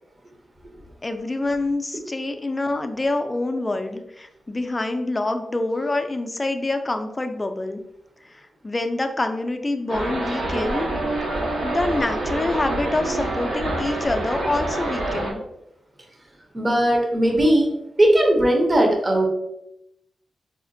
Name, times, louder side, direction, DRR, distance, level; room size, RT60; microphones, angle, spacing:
voice 1, 1.0-7.8 8.3-10.9 11.3-15.4, left 2 dB, 20° left, 6 dB, 0.4 m, -26 dB
sound 1, 9.9-15.3, right 1 dB, 75° right, 0.8 m, -26 dB
voice 2, 16.5-19.3, right 1 dB, 25° right, 1 dB, 0.6 m, -18 dB
4.8 x 2.1 x 2.5 m, 0.83 s
wide cardioid pair, 105°, 0 cm